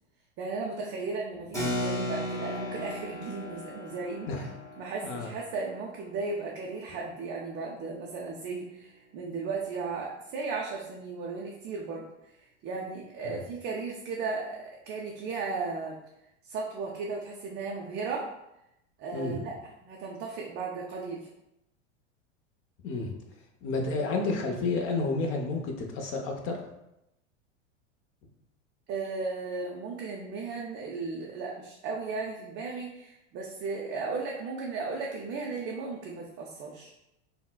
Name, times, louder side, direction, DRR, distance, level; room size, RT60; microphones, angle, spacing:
voice 1, 0.4-4.4 4.8-12.1 12.6-16.0 16.4-18.3 19.0-19.5 19.8-21.3 28.9-36.9, right 4 dB, 30° right, -2 dB, 0.4 m, -35 dB
Keyboard (musical), 1.5-7.6, left 1 dB, 10° left, 1.0 m, -37 dB
voice 2, 23.6-26.7, left 3 dB, 35° left, 3 dB, 0.6 m, -30 dB
3.7 x 2.1 x 2.2 m, 0.87 s
hypercardioid pair, 100°, 36 cm